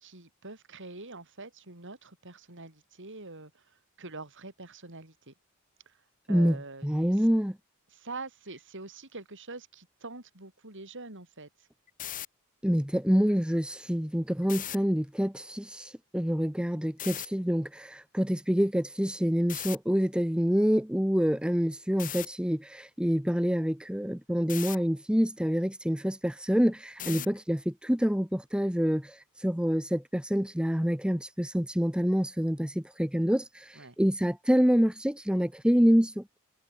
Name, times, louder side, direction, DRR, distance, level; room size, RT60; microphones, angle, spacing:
voice 1, 0.0-5.3 5.9-6.0 6.3-7.3 7.9-11.7 27.0-27.3 33.8-34.0, right 3 dB, 60° right, 5.5 m, -45 dB
voice 2, 6.8-7.6 12.6-36.2, equal, 5° right, 1.2 m, -27 dB
sound 1, 11.9-12.3 14.4-14.8 17.0-17.3 19.5-19.8 22.0-22.3 24.5-24.8 27.0-27.4, left 12 dB, 35° left, 0.9 m, -37 dB
head